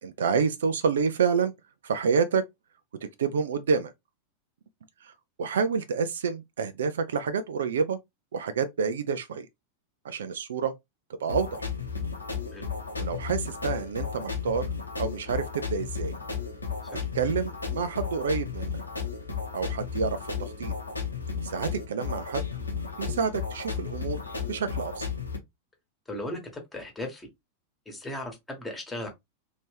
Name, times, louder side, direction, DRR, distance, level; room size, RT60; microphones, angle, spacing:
voice 1, 0.0-1.5 1.8-2.5 3.2-3.9 5.0-5.1 5.4-8.0 8.3-9.5 10.0-10.7 11.2-11.5 13.0-14.7 15.0-16.2 17.1-18.7 19.5-20.7 21.4-22.4 23.0-24.2 24.5-25.1, right 5 dB, 65° right, 0.4 m, -28 dB
sound 1, 11.3-25.4, left 6 dB, 80° left, 1.0 m, -34 dB
voice 2, 26.1-27.3 27.9-29.1, left 1 dB, 10° left, 1.2 m, -37 dB
3.1 x 2.7 x 3.2 m
figure-of-eight pair, 90°, 0 cm